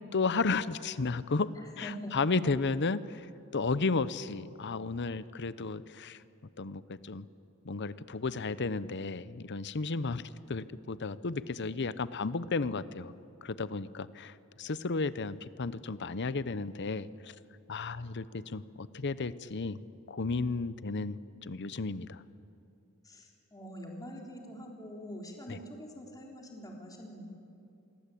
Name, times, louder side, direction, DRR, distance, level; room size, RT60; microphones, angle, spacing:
voice 1, 0.1-1.5 1.8-3.3 3.5-6.2 6.6-7.3 7.6-13.1 13.4-17.3 17.7-19.8 20.1-22.2 25.5-25.6, left 3 dB, 55° left, 16 dB, 0.8 m, -33 dB
voice 2, 1.6-2.1 23.0-27.2, equal, 15° left, 0 dB, 3.6 m, -45 dB
27.0 x 22.5 x 8.5 m, 2.6 s
head